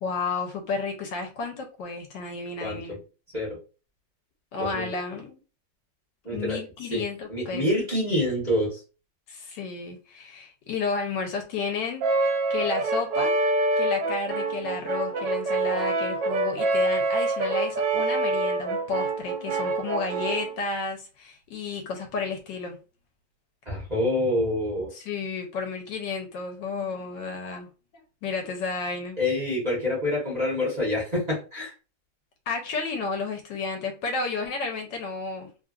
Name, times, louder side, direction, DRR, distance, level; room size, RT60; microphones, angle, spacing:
voice 1, 0.0-3.0 4.5-5.4 6.3-7.7 9.3-13.4 13.8-22.8 24.9-27.7 28.2-29.2 32.5-35.5, left 4 dB, 80° left, 3 dB, 1.4 m, -32 dB
voice 2, 4.6-4.9 6.2-6.6 6.9-7.0 7.3-8.8 23.6-24.9 29.2-31.7, left 1 dB, 25° right, -6 dB, 1.0 m, -26 dB
Brass instrument, 12.0-20.6, right 2 dB, 80° right, 1.3 m, -26 dB
3.1 x 2.4 x 2.4 m, 0.33 s
omnidirectional pair, 1.9 m